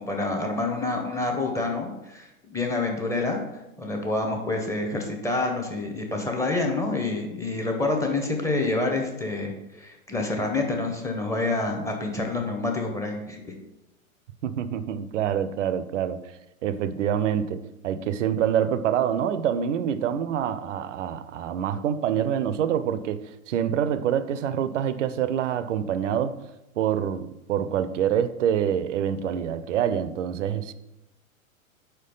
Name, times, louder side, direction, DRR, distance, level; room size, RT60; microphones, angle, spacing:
voice 1, 0.0-3.4 3.8-13.5, left 2 dB, 5° left, 1 dB, 0.8 m, -27 dB
voice 2, 14.4-16.2 16.6-26.3 26.8-30.7, right 9 dB, 60° right, 14 dB, 0.6 m, -26 dB
4.7 x 4.4 x 5.3 m, 0.92 s
figure-of-eight pair, 105°, 43 cm